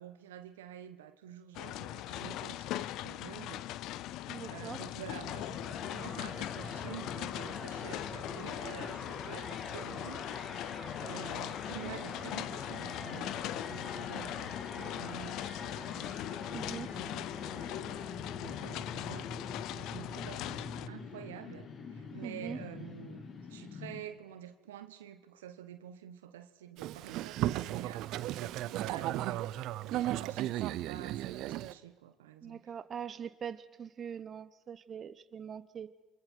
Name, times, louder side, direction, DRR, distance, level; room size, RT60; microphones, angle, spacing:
voice 1, 0.0-3.6 4.4-10.3 11.0-16.2 16.7-28.1 28.4-29.5 29.8-32.7, right 10 dB, 90° right, 11 dB, 1.3 m, -49 dB
sound 1, 1.5-20.9, left 14 dB, 70° left, 0.7 m, -41 dB
voice 2, 4.3-4.8 16.5-16.9 22.2-22.6 32.4-36.0, right 8 dB, 45° right, 14 dB, 1.0 m, -42 dB
sound 2, 5.2-24.0, left 5 dB, 50° left, 3.3 m, -43 dB
Boat Water vehicle, 26.8-31.7, right 14 dB, 70° right, 0.7 m, -35 dB
28.5 x 25.5 x 4.6 m, 1.2 s
hypercardioid pair, 65°, 0 cm